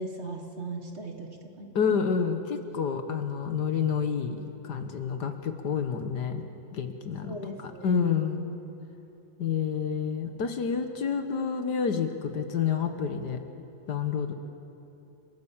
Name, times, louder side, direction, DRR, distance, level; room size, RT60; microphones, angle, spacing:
voice 1, 0.0-1.8 7.2-8.2, right 2 dB, 40° right, 4 dB, 1.7 m, -38 dB
voice 2, 1.7-6.4 6.7-8.4 9.4-13.4 13.9-14.3, left 6 dB, 65° left, 7 dB, 1.7 m, -29 dB
29.5 x 14.5 x 7.3 m, 2.9 s
omnidirectional pair, 2.0 m